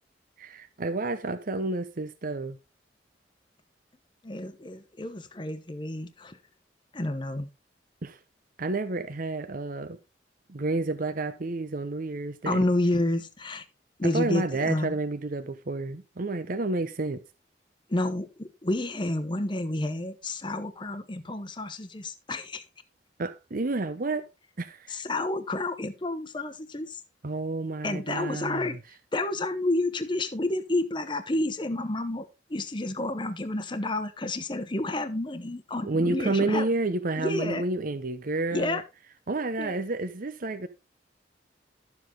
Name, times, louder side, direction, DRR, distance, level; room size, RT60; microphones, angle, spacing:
voice 1, 0.4-2.6 8.0-8.2 8.6-10.0 10.5-12.6 14.0-17.2 23.2-24.3 24.6-25.0 27.2-28.8 35.8-38.8 39.3-40.7, right 2 dB, 50° right, 0.8 m, -30 dB
voice 2, 4.2-6.4 6.9-7.5 12.4-13.6 14.0-14.9 17.9-22.6 24.9-27.0 27.8-28.8 29.1-36.7 37.2-37.6 38.5-38.8 39.6-39.8, left 2 dB, 25° left, 0.9 m, -30 dB
12.0 x 7.3 x 3.7 m
head